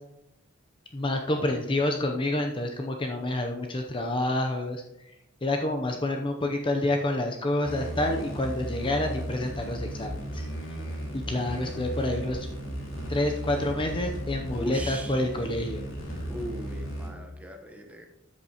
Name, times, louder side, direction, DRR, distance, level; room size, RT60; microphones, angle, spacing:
voice 1, 0.9-4.8 5.4-10.5 11.1-12.5 13.1-15.9, left 1 dB, 25° left, 3 dB, 0.6 m, -28 dB
sound 1, 7.6-17.1, equal, 75° left, 2.3 m, -35 dB
voice 2, 14.6-15.2 16.3-18.1, equal, 5° right, 3 dB, 1.0 m, -38 dB
12.5 x 6.8 x 2.9 m, 0.87 s
head